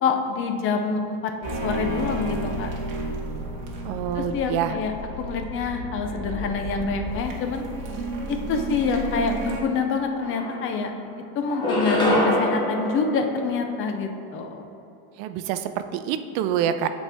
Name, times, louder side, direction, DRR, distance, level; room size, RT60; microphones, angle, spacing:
voice 1, 0.0-1.3 1.6-2.7 4.2-7.6 8.3-10.9 11.4-14.6, left 5 dB, 35° left, 5 dB, 0.4 m, -26 dB
sound 1, 1.4-9.6, right 2 dB, 50° right, 1.1 m, -32 dB
voice 2, 3.8-4.8 15.2-16.9, right 9 dB, 80° right, 10 dB, 0.5 m, -26 dB
sound 2, 9.8-9.9 10.2-11.0 11.5-14.1, left 1 dB, 10° left, 0.9 m, -25 dB
8.2 x 4.3 x 3.4 m, 2.5 s
cardioid pair, 175°, 42 cm